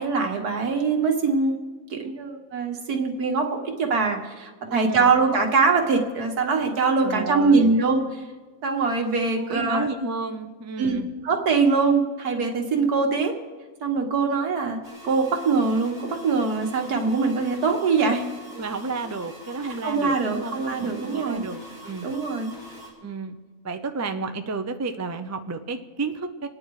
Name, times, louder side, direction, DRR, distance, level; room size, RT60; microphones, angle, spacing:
voice 1, 0.0-1.6 1.9-8.2 8.6-9.9 10.8-11.0 11.2-13.3 13.8-18.3 19.8-21.4 22.0-22.5, right 4 dB, 85° right, 2 dB, 2.1 m, -23 dB
voice 2, 4.7-5.1 7.0-7.8 9.4-11.1 18.5-22.1 23.0-23.4 23.6-26.5, right 4 dB, 25° right, 7 dB, 0.3 m, -31 dB
sound 1, 14.8-22.9, equal, 30° left, 4.9 m, -43 dB
26.5 x 9.7 x 4.8 m, 1.4 s
omnidirectional pair, 1.6 m